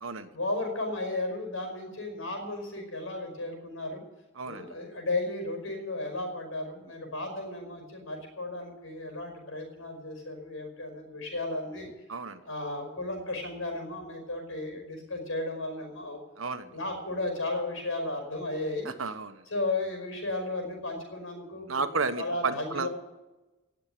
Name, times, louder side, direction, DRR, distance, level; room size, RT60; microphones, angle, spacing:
voice 1, 0.3-4.0 4.4-11.9 12.4-16.2 16.6-18.9 19.5-22.9, left 2 dB, 85° left, 4 dB, 5.4 m, -34 dB
voice 2, 4.4-4.7 12.1-12.4 16.4-16.7 18.8-19.4 21.7-22.9, right 4 dB, 85° right, 10 dB, 1.2 m, -32 dB
18.5 x 7.4 x 9.1 m, 1.1 s
head